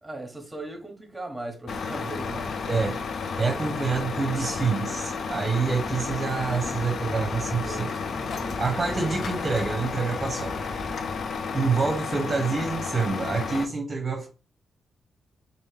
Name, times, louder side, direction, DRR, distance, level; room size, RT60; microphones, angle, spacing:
voice 1, 0.0-2.7 7.6-7.9 8.1-9.3, right 2 dB, 15° right, 1.2 m, -38 dB
Truck, 1.7-13.7, left 5 dB, 65° left, 0.4 m, -32 dB
voice 2, 3.4-7.9 8.6-10.6 11.5-14.3, right 4 dB, 35° right, 0.8 m, -27 dB
Water, 5.6-11.0, left 1 dB, 30° left, 0.8 m, -41 dB
3.1 x 2.6 x 3.3 m
cardioid pair, 70°, 0 cm